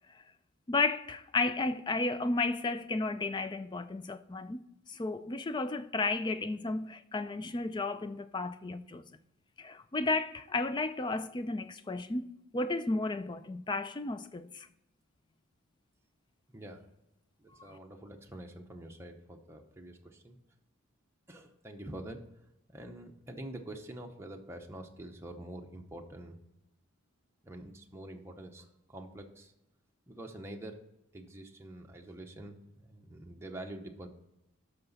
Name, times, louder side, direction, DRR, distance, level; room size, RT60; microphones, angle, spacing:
voice 1, 0.7-9.1 9.6-12.3 12.5-14.7 17.6-17.8, left 3 dB, 20° left, 0.3 m, -33 dB
voice 2, 16.5-16.8 17.4-20.4 21.3-22.2 22.7-26.4 27.4-29.5 30.1-30.9 31.1-34.1, right 1 dB, 10° right, 0.8 m, -46 dB
13.0 x 5.8 x 4.0 m
head